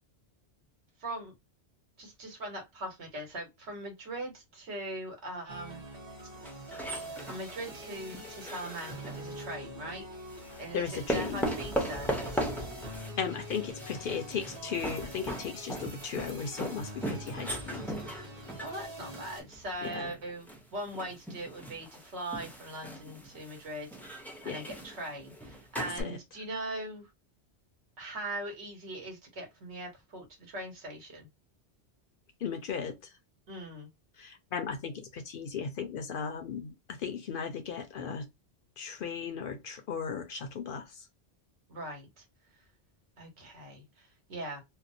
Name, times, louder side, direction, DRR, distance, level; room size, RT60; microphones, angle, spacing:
voice 1, 1.0-1.3 2.0-5.8 7.2-10.1 10.6-12.5 18.6-23.9 24.4-27.1 28.0-31.3 33.5-33.9 41.7-42.2 43.2-44.6, right 1 dB, 80° right, 1.4 m, -40 dB
sound 1, 5.5-19.4, equal, 25° right, 0.9 m, -45 dB
sound 2, 6.4-9.5 10.3-26.0, equal, ahead, 0.4 m, -38 dB
voice 2, 10.5-11.5 13.2-17.9 19.8-20.1 24.5-24.6 25.8-26.2 32.4-33.1 34.2-38.3 38.8-41.1, left 6 dB, 60° left, 0.6 m, -36 dB
2.7 x 2.1 x 2.5 m
omnidirectional pair, 1.1 m